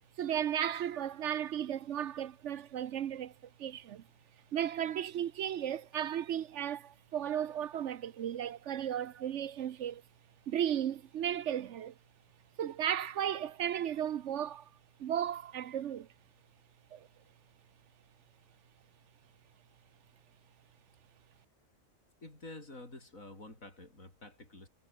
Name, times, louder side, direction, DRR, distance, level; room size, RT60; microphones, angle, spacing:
voice 1, 0.2-3.3 3.6-4.0 4.5-10.0 10.5-11.9 12.6-14.7 15.0-16.1 16.9-17.1, right 10 dB, 65° right, 1.0 m, -35 dB
voice 2, 22.2-24.7, left 2 dB, 80° left, 6.7 m, -49 dB
omnidirectional pair, 1.4 m